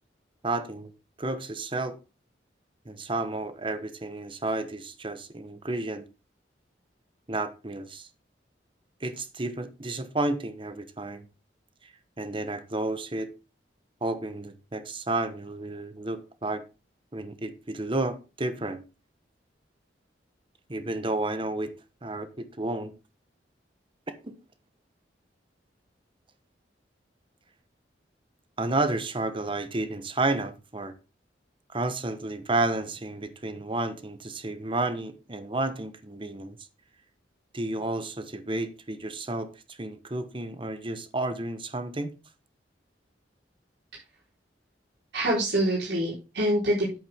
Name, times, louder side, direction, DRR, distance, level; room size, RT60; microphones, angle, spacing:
voice 1, 0.4-0.9 1.2-2.0 2.8-6.0 7.3-8.1 9.0-11.2 12.2-13.3 14.0-16.6 17.1-18.8 20.7-21.7 22.0-22.9 24.2-24.3 28.6-30.9 31.7-36.6 37.5-42.1, right 2 dB, 30° right, 1.1 m, -31 dB
voice 2, 45.1-47.0, right 1 dB, 65° right, 4.2 m, -25 dB
9.0 x 8.4 x 3.6 m
head